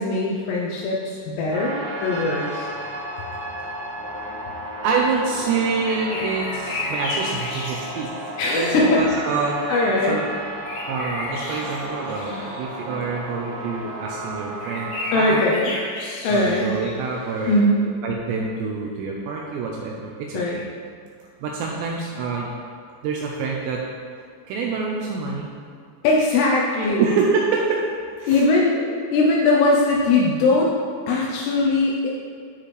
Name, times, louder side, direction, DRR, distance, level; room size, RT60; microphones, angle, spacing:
voice 1, 0.0-1.7 2.0-2.7 8.4-10.2 15.1-15.7 16.2-16.7 17.5-17.9 20.3-20.6 26.0-27.1 28.3-30.7 31.1-32.1, left 2 dB, 90° left, -2 dB, 2.3 m, -20 dB
sound 1, 1.5-15.3, right 1 dB, 65° right, 3.4 m, -33 dB
voice 2, 4.8-8.1 8.6-9.6 10.1-10.2 10.9-15.4 16.3-17.6 18.0-20.6 21.4-22.5 23.0-23.8 24.5-25.5 26.8-27.8 28.2-28.4, right 4 dB, 85° right, -1 dB, 2.6 m, -26 dB
sound 2, 5.8-8.4 10.6-12.7 13.5-13.6 14.0-14.1 14.6-17.6, left 2 dB, 70° left, 2.6 m, -33 dB
12.5 x 4.2 x 3.2 m, 2.1 s
omnidirectional pair, 5.5 m